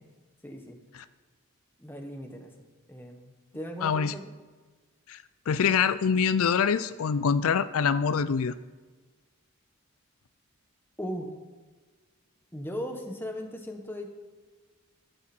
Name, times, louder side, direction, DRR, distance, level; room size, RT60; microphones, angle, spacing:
voice 1, 0.4-0.8 1.8-2.5 2.9-4.3 11.0-11.3 12.5-14.1, equal, 10° left, 3 dB, 1.3 m, -38 dB
voice 2, 3.8-4.1 5.1-8.5, left 6 dB, 75° left, 14 dB, 0.4 m, -25 dB
14.0 x 12.0 x 4.5 m, 1.4 s
head